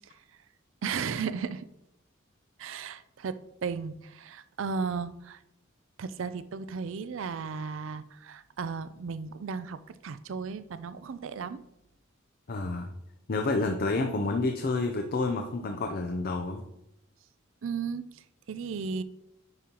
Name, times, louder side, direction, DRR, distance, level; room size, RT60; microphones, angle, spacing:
voice 1, 0.8-1.7 2.6-5.4 6.0-11.6 17.6-18.2 18.5-19.0, right 5 dB, 65° right, 13 dB, 0.4 m, -35 dB
voice 2, 12.5-12.9 13.3-16.6, left 3 dB, 45° left, 4 dB, 0.6 m, -29 dB
9.7 x 5.4 x 2.9 m, 0.85 s
head